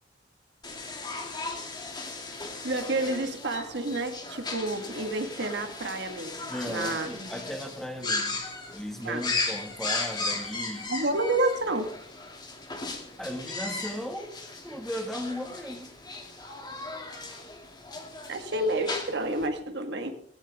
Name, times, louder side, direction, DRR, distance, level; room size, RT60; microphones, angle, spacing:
sound 1, 0.6-19.5, left 3 dB, 25° left, 2.4 m, -36 dB
voice 1, 2.6-7.3 8.0-8.1 9.0-9.2 10.9-11.9 18.3-20.1, right 2 dB, 65° right, 6 dB, 1.7 m, -30 dB
voice 2, 6.5-10.9 13.2-14.3 14.6-15.9, equal, ahead, 4 dB, 1.8 m, -36 dB
18.0 x 16.0 x 3.6 m, 0.63 s
head